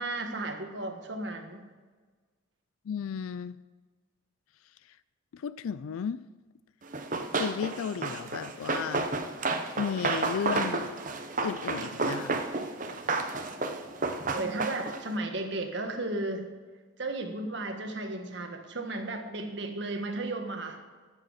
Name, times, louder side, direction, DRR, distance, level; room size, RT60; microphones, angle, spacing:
voice 1, 0.0-1.7 14.3-16.5 17.0-20.8, right 2 dB, 55° right, 5 dB, 1.5 m, -34 dB
voice 2, 2.9-3.5 5.3-6.2 7.4-9.1 9.8-10.9 11.4-12.4, left 7 dB, 90° left, 17 dB, 0.4 m, -34 dB
Run, 6.9-15.1, right 3 dB, 40° right, 0.9 m, -31 dB
13.0 x 7.7 x 6.4 m, 1.4 s
head